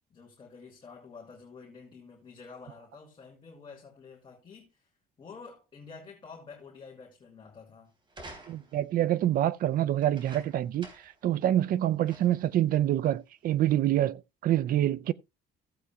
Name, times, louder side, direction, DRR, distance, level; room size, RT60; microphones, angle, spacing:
voice 1, 0.1-4.9 5.2-7.9, left 5 dB, 30° left, 2.6 m, -49 dB
sound 1, 8.1-8.9 10.0-11.2 11.6-11.7 12.1-12.5 13.3-13.4, right 2 dB, 30° right, 3.4 m, -49 dB
voice 2, 8.5-10.9 11.2-15.1, right 12 dB, 60° right, 0.5 m, -26 dB
15.5 x 8.1 x 2.3 m
cardioid pair, 110°, 17 cm